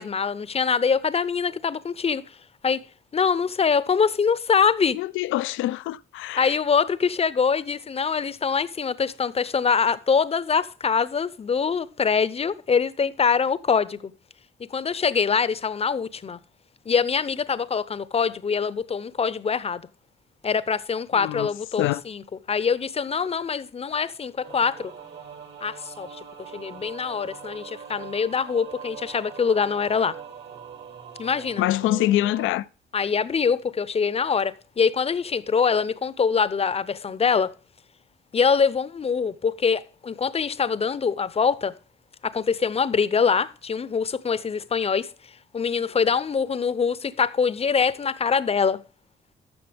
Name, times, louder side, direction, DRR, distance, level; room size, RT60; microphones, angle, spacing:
voice 1, 0.0-2.2 2.6-2.8 3.1-5.0 6.4-14.1 14.7-16.4 16.9-19.8 20.4-22.2 22.5-24.9 25.6-26.2 26.5-30.1 31.2-31.6 32.9-37.5 38.3-41.7 42.2-45.1 45.5-48.8, left 6 dB, 30° left, 0.7 m, -24 dB
voice 2, 4.9-6.6 21.1-21.5 21.8-22.0 31.6-32.7, left 14 dB, 85° left, 0.4 m, -25 dB
sound 1, 24.4-32.5, right 7 dB, 65° right, 2.5 m, -42 dB
13.0 x 6.6 x 3.4 m
cardioid pair, 90°, 20 cm